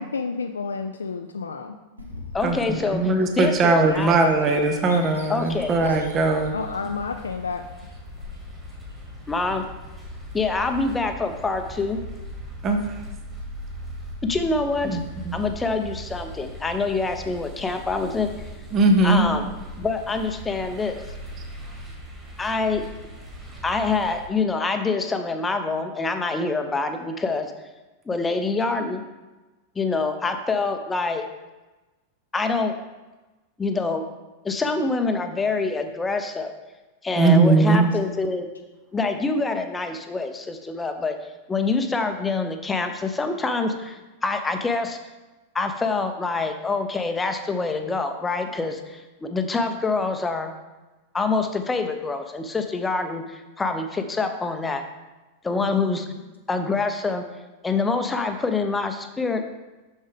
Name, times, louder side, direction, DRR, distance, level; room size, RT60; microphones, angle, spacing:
voice 1, 0.0-1.8 6.5-7.7 37.7-37.8 55.6-56.1, left 5 dB, 75° left, 6 dB, 0.3 m, -31 dB
Bird vocalization bird call bird song, 2.0-10.4, left 2 dB, 85° right, 1.1 m, -42 dB
voice 2, 2.3-4.2 5.3-5.7 9.3-9.6 10.3-12.0 14.2-15.0 15.3-18.3 19.0-19.5 19.8-21.0 22.4-22.8 23.6-27.5 28.1-29.0 29.8-31.3 32.3-32.8 33.6-34.0 34.4-36.5 37.0-38.5 38.9-41.2 41.5-45.0 45.5-50.5 51.1-54.8 55.4-56.1 56.5-57.2 57.6-59.4, left 3 dB, 15° left, 7 dB, 0.7 m, -25 dB
voice 3, 2.9-6.5 12.6-13.0 14.8-15.4 18.7-19.3 37.2-37.9, right 3 dB, 30° right, 5 dB, 0.7 m, -20 dB
sound 1, 5.5-24.3, right 1 dB, 10° right, 1.9 m, -40 dB
6.8 x 6.4 x 3.5 m, 1.1 s
figure-of-eight pair, 90°, 0 cm